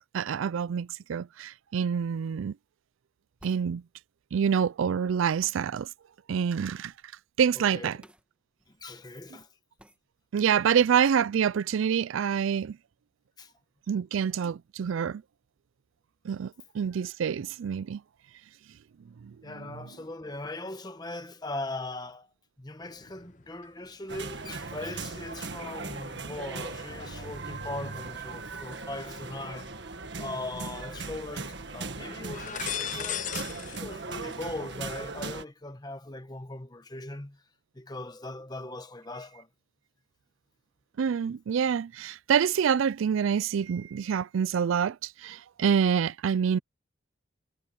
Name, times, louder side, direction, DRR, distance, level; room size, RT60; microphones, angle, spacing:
voice 1, 0.1-2.6 3.4-3.8 4.3-5.9 6.3-6.9 7.4-8.0 10.3-12.8 13.9-15.2 16.2-18.0 19.2-19.7 41.0-46.6, right 7 dB, 80° right, 0.4 m, -27 dB
sound 1, 3.4-3.7 5.4-5.6 8.0-8.2 8.6-8.7 9.8-10.0, right 1 dB, 5° right, 1.8 m, -54 dB
voice 2, 7.6-7.9 8.7-9.5 13.4-13.5 19.4-29.8 30.2-37.4 37.7-39.5, left 2 dB, 20° left, 1.1 m, -40 dB
sound 2, 22.8-23.7 24.0-29.7 30.2-31.2 31.4-31.7 32.2-33.8 34.1-34.8, left 9 dB, 40° left, 0.8 m, -41 dB
sound 3, 24.1-35.4, right 3 dB, 60° right, 1.7 m, -39 dB
head